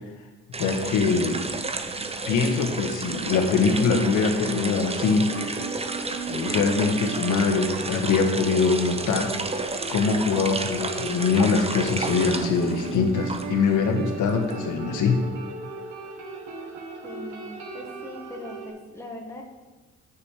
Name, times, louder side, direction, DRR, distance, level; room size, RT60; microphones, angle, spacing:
sound 1, 0.5-13.7 14.0-15.2, right 3 dB, 20° right, 0.9 m, -32 dB
voice 1, 0.6-1.4 2.3-5.8 6.3-15.2, left 4 dB, 80° left, 3 dB, 1.7 m, -23 dB
sound 2, 3.2-18.7, right 4 dB, 75° right, 1.6 m, -37 dB
voice 2, 17.0-19.4, left 1 dB, 10° left, -1 dB, 1.8 m, -40 dB
8.9 x 6.7 x 6.7 m, 1.2 s
cardioid pair, 90°, 30 cm